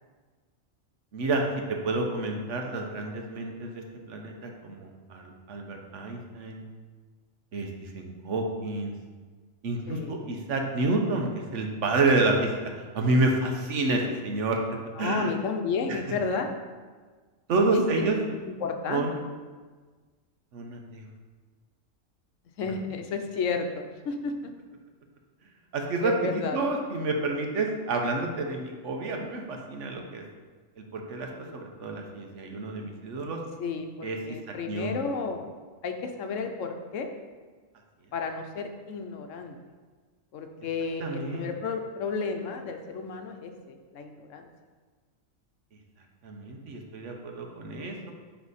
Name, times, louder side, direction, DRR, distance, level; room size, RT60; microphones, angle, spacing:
voice 1, 1.1-6.6 7.5-8.9 9.6-14.6 15.0-15.3 15.9-16.0 17.5-18.3 18.9-19.1 20.5-21.1 22.6-22.7 25.7-30.2 30.8-33.4 34.0-34.4 34.7-35.1 41.0-41.5 46.2-48.1, right 2 dB, 70° right, 2 dB, 1.1 m, -29 dB
voice 2, 9.9-10.3 15.0-16.6 17.7-18.1 18.4-19.1 22.6-24.5 26.0-26.6 33.6-35.5 35.8-37.1 38.1-39.6 40.3-44.5, left 4 dB, 70° left, 5 dB, 1.0 m, -32 dB
9.7 x 3.4 x 4.1 m, 1.4 s
omnidirectional pair, 1.4 m